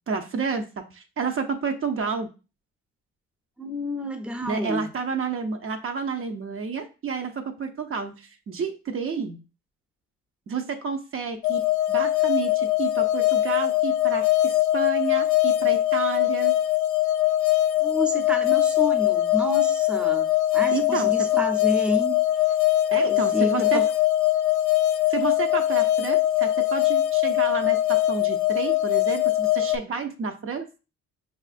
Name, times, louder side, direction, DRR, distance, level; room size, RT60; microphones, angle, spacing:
voice 1, 0.1-0.6 0.9-2.3 4.4-9.4 10.5-11.6 11.9-16.5 20.7-21.1 22.9-23.8 25.1-30.7, right 5 dB, 45° right, 5 dB, 0.6 m, -30 dB
voice 2, 3.6-4.9 17.8-22.2 23.1-23.9, equal, 5° right, 4 dB, 0.6 m, -30 dB
sound 1, 11.4-29.8, left 14 dB, 90° left, 0.5 m, -22 dB
5.2 x 2.5 x 2.4 m, 0.32 s
cardioid pair, 90°, 30 cm